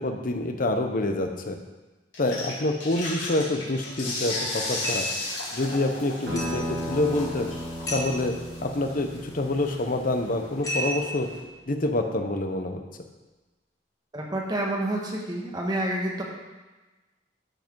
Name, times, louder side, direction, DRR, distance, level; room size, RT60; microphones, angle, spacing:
voice 1, 0.0-1.6 2.2-5.0 5.5-7.5 7.9-8.4 8.6-11.3 11.7-12.8, left 2 dB, 50° left, 5 dB, 0.9 m, -27 dB
sound 1, 2.1-11.4, left 2 dB, 85° left, 3.3 m, -36 dB
sound 2, 4.8-5.2 6.4-6.7 7.9-8.2 10.6-11.3, right 1 dB, 20° left, 2.4 m, -31 dB
sound 3, 6.3-11.4, equal, 80° right, 2.0 m, -36 dB
voice 2, 14.1-16.2, right 1 dB, 25° right, -2 dB, 1.7 m, -28 dB
12.5 x 5.0 x 4.7 m, 1.2 s
head